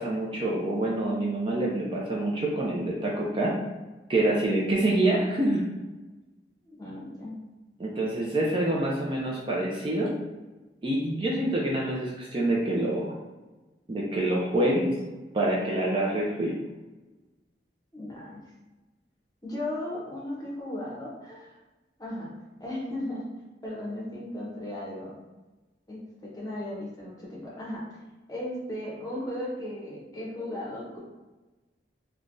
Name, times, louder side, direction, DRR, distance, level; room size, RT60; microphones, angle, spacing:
voice 1, 0.0-3.5 4.1-5.6 7.8-10.1 10.8-13.1 13.9-14.9 15.3-16.5, right 1 dB, 30° right, -4 dB, 0.4 m, -26 dB
voice 2, 6.8-7.4 17.9-18.4 19.4-21.6 22.0-22.3 22.6-23.2 23.6-25.2 25.9-27.8 28.3-31.0, left 1 dB, 20° left, -5 dB, 0.8 m, -36 dB
3.2 x 2.2 x 2.5 m, 1.2 s
head